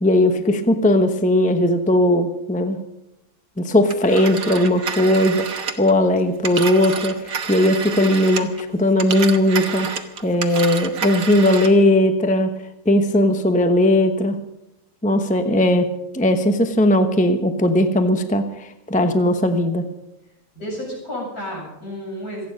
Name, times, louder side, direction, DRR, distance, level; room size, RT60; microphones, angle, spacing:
voice 1, 0.0-2.8 3.6-9.9 10.2-12.5 12.9-14.4 15.0-15.9 16.1-19.8, left 1 dB, 5° left, 7 dB, 0.9 m, -18 dB
Telephone, 3.9-8.6 8.9-11.8, right 6 dB, 70° right, 1.7 m, -29 dB
voice 2, 20.5-22.5, equal, 70° left, -4 dB, 8.5 m, -31 dB
27.5 x 9.3 x 5.3 m, 0.87 s
omnidirectional pair, 1.6 m